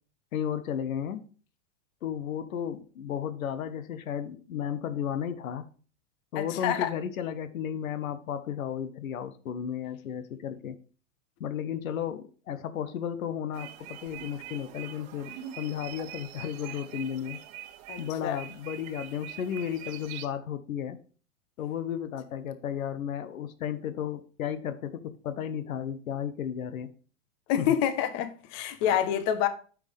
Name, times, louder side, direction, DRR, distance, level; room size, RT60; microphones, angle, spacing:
voice 1, 0.3-1.2 2.0-5.7 6.3-10.8 11.4-17.4 18.0-21.0 21.6-26.9 27.6-27.7, left 9 dB, 85° left, 1.0 m, -34 dB
voice 2, 6.3-6.9 17.9-18.4 27.5-29.5, left 10 dB, 40° left, 1.1 m, -27 dB
sound 1, 13.5-20.3, right 11 dB, 45° right, 1.1 m, -44 dB
8.8 x 6.2 x 3.5 m
hypercardioid pair, 125°, 40 cm